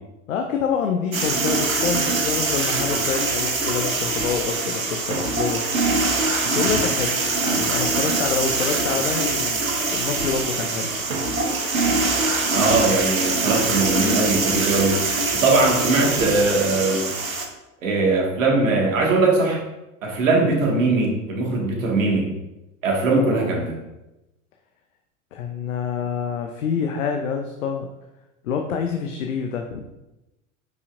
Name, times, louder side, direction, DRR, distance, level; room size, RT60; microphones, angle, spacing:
voice 1, 0.3-5.6 6.4-9.6 9.9-10.9 23.1-23.5 25.3-27.9 28.4-29.8, left 6 dB, 75° left, 4 dB, 0.8 m, -27 dB
sound 1, 1.1-17.5, right 3 dB, 90° right, 1.0 m, -23 dB
voice 2, 12.5-17.0 17.8-19.6 20.0-22.2 22.8-23.7, right 3 dB, 70° right, -1 dB, 2.0 m, -20 dB
9.2 x 5.6 x 2.6 m, 0.97 s
figure-of-eight pair, 75°, 40 cm